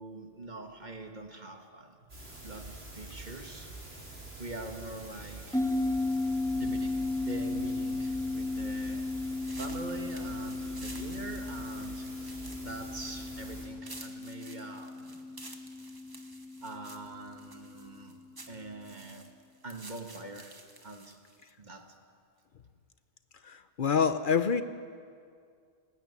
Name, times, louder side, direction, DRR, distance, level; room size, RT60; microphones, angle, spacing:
voice 1, 0.0-3.8 4.4-5.6 6.5-12.3 12.6-15.2 16.6-18.2 18.5-19.3 19.6-20.5 20.8-21.2 21.6-22.0, right 2 dB, 45° right, 5 dB, 1.6 m, -44 dB
sound 1, 2.1-13.7, right 2 dB, 70° right, 4.6 m, -46 dB
sound 2, 5.5-18.3, left 2 dB, 5° left, 1.1 m, -35 dB
sound 3, 9.4-21.5, right 2 dB, 20° right, 1.3 m, -51 dB
voice 2, 23.4-24.6, left 6 dB, 55° left, 11 dB, 0.8 m, -27 dB
18.5 x 15.5 x 9.7 m, 2.3 s
omnidirectional pair, 1.1 m